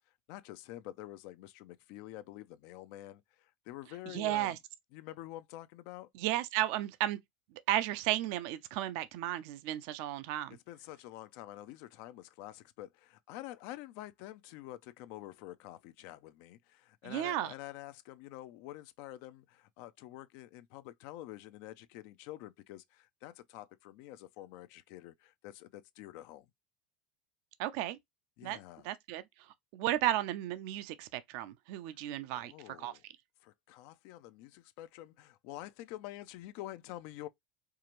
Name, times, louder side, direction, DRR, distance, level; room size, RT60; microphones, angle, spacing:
voice 1, 0.3-4.6 4.9-6.1 10.7-26.5 28.4-28.9 32.0-32.1 32.3-33.0 33.4-37.3, left 15 dB, 65° left, 0.5 m, -48 dB
voice 2, 4.1-4.6 6.1-7.2 7.7-10.6 17.0-17.5 27.6-28.0 28.4-28.6 28.8-32.5 32.8-32.9, right 14 dB, 65° right, 0.6 m, -34 dB
4.6 x 2.5 x 3.0 m
supercardioid pair, 120°, 5 cm